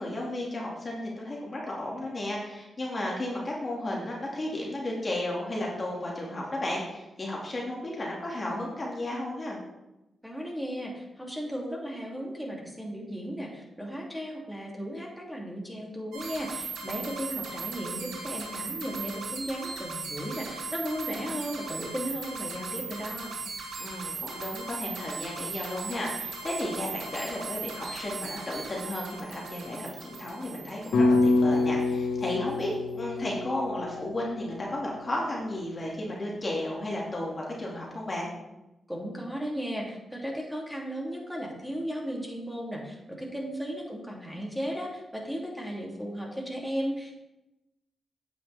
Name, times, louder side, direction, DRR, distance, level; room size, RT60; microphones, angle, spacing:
voice 1, 0.0-9.6 23.8-38.3, left 1 dB, 40° left, -3 dB, 2.3 m, -33 dB
voice 2, 10.2-23.4 38.9-47.1, equal, ahead, -3 dB, 2.8 m, -35 dB
sound 1, 16.1-32.0, right 4 dB, 85° right, 1.3 m, -38 dB
sound 2, 30.9-35.2, left 3 dB, 80° left, 1.3 m, -27 dB
9.2 x 7.1 x 3.5 m, 0.97 s
supercardioid pair, 50°, 0 cm